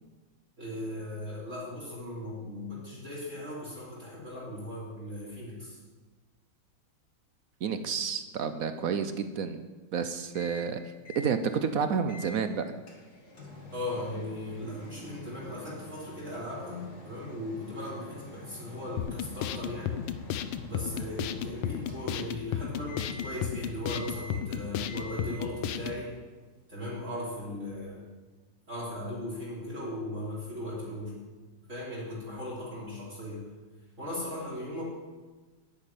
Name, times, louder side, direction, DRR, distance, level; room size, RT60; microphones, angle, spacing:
voice 1, 0.6-5.8 13.7-20.1 20.6-26.2 26.7-28.0 28.7-31.2 31.7-33.5 34.0-34.9, left 1 dB, 35° right, -5 dB, 3.6 m, -38 dB
voice 2, 7.6-9.6 9.9-10.8 11.1-12.6, right 6 dB, 65° right, 9 dB, 0.8 m, -30 dB
Microwave oven, 10.3-10.7 11.0-11.4 12.1-12.4 12.9-22.5 22.9-23.5 23.9-24.5 24.9-25.5, left 1 dB, 45° left, 3.3 m, -47 dB
sound 1, 19.0-26.0, left 10 dB, 85° left, 1.7 m, -34 dB
11.0 x 9.5 x 9.2 m, 1.3 s
omnidirectional pair, 2.4 m